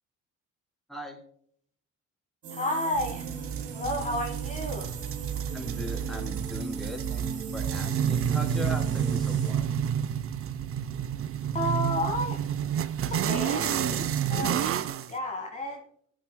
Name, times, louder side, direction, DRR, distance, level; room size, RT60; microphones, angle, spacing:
sound 1, 2.4-9.5, right 4 dB, 70° right, 2.7 m, -38 dB
voice 1, 2.5-3.2 3.7-4.9 11.5-12.4 13.1-14.6 15.1-15.8, left 1 dB, 25° left, 1 dB, 1.6 m, -31 dB
sound 2, 3.0-15.1, right 9 dB, 50° right, 0.6 m, -30 dB
voice 2, 5.5-9.6, left 1 dB, ahead, 0 dB, 3.3 m, -39 dB
17.5 x 8.8 x 2.2 m, 0.65 s
cardioid pair, 90°, 30 cm